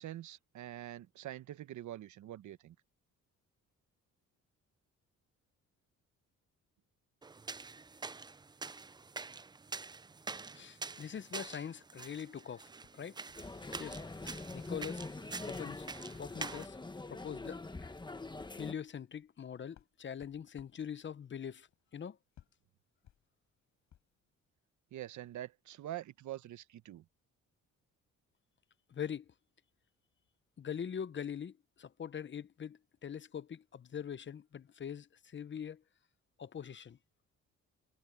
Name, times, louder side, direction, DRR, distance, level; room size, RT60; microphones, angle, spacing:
voice 1, 0.0-2.7 24.9-27.0, right 13 dB, 70° right, 1.2 m, -45 dB
sound 1, 7.2-16.7, right 4 dB, 15° right, 0.4 m, -46 dB
voice 2, 10.5-13.2 13.8-14.0 14.5-15.1 15.5-15.9 16.2-16.8 17.1-17.9 18.5-21.7 21.9-22.2 28.9-29.3 30.6-35.8 36.4-37.0, left 8 dB, 40° left, 0.8 m, -43 dB
sound 2, 12.8-14.2 14.5-15.1 15.5-15.8 16.1-16.4 17.2-17.3 17.7-17.9 18.3-24.2, left 10 dB, 70° left, 6.7 m, -66 dB
sound 3, 13.4-18.7, left 3 dB, 15° left, 1.4 m, -44 dB
cardioid pair, 90°, 30 cm